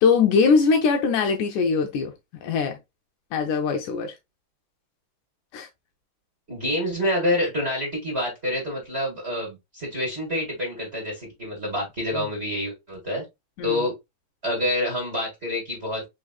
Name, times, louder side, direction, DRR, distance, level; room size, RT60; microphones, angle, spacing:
voice 1, 0.0-2.1 2.4-2.8 3.3-4.2 5.5-5.7 12.2-12.3 13.6-13.7, left 5 dB, 80° left, 1.9 m, -21 dB
voice 2, 6.5-13.2 13.6-13.9 14.4-16.0, left 1 dB, 25° right, 1.7 m, -27 dB
4.8 x 3.8 x 2.3 m
omnidirectional pair, 3.8 m